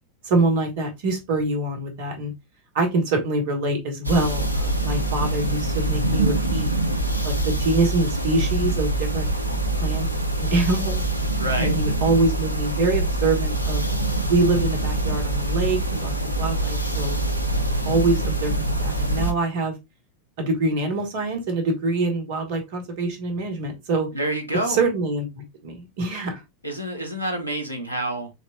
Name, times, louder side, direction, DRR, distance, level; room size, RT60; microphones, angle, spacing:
voice 1, 0.2-2.3 2.7-6.7 7.2-9.3 9.8-10.1 10.4-11.0 11.6-13.8 14.3-17.2 17.8-18.5 18.8-19.7 20.4-24.1 24.7-26.3, right 2 dB, 50° right, 1.4 m, -24 dB
sound 1, 4.0-19.3, right 2 dB, 90° right, 0.5 m, -24 dB
voice 2, 11.4-11.7 24.1-24.8 26.6-28.3, right 1 dB, 90° left, 0.9 m, -28 dB
4.0 x 3.1 x 2.7 m
figure-of-eight pair, 90°, 0 cm